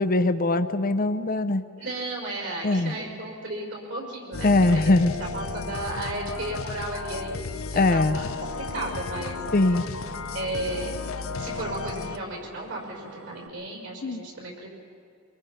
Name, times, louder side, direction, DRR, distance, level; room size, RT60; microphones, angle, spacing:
voice 1, 0.0-1.6 2.6-2.9 4.4-5.1 7.7-8.2 9.5-9.9 14.0-14.2, left 2 dB, 45° left, 11 dB, 0.7 m, -21 dB
voice 2, 1.8-5.0 5.3-9.4 9.7-9.8 10.3-11.0 11.4-14.7, right 2 dB, 65° right, 0 dB, 5.5 m, -34 dB
sound 1, 4.3-12.2, left 4 dB, 90° left, 0.7 m, -34 dB
sound 2, 8.1-13.5, right 2 dB, 90° right, 1.8 m, -45 dB
24.0 x 23.5 x 5.7 m, 2.5 s
head